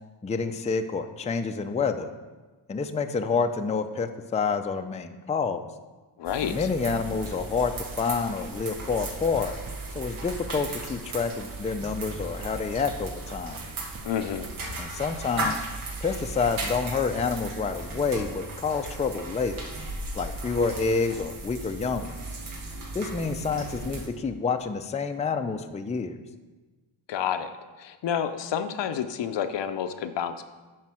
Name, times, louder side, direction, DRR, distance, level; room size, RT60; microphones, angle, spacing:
voice 1, 0.2-2.1 2.7-5.6 6.4-7.7 8.0-9.5 9.9-13.6 14.8-15.6 16.0-19.6 20.2-22.2 22.9-26.1, left 5 dB, 15° left, 6 dB, 0.5 m, -28 dB
voice 2, 6.2-6.7 14.0-14.5 27.1-27.5 27.8-30.5, left 8 dB, 65° left, 9 dB, 0.7 m, -29 dB
sound 1, 6.2-24.1, right 2 dB, 85° right, 1.6 m, -37 dB
Livestock farm animals working animals, 7.0-16.1, right 4 dB, 30° right, 0.6 m, -48 dB
7.6 x 4.7 x 6.1 m, 1.2 s
cardioid pair, 80°, 48 cm